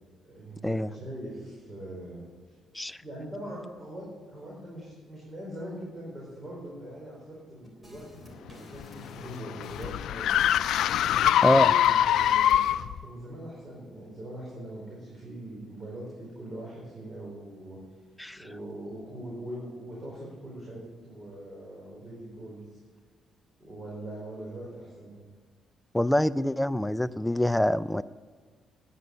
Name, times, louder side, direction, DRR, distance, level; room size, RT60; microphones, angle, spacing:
voice 1, 0.2-2.6 3.0-10.5 11.2-12.6 13.0-17.8 18.4-22.8 23.6-25.2, right 1 dB, 25° right, -5 dB, 4.6 m, -42 dB
sound 1, 7.6-12.7, equal, 10° right, 3.4 m, -52 dB
sound 2, 8.5-13.0, left 11 dB, 80° left, 0.4 m, -24 dB
voice 2, 11.4-11.7 18.2-18.4 25.9-28.0, left 1 dB, 5° left, 15 dB, 0.4 m, -25 dB
10.5 x 9.9 x 8.3 m, 1.5 s
cardioid pair, 90°, 0 cm